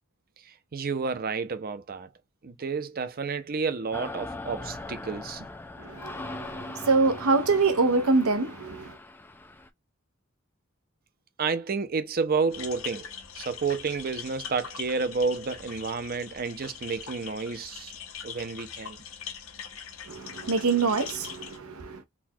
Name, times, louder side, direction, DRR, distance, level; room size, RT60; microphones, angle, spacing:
voice 1, 0.4-2.1 2.4-5.5 11.4-13.1 13.3-17.9 18.2-19.0, right 4 dB, 45° right, 0.6 m, -30 dB
sound 1, 3.9-9.7, left 2 dB, 10° left, 0.3 m, -40 dB
voice 2, 5.8-9.0 20.1-22.0, right 3 dB, 85° right, 0.7 m, -25 dB
sound 2, 12.5-21.6, left 7 dB, 70° left, 0.8 m, -42 dB
4.0 x 2.3 x 2.7 m
head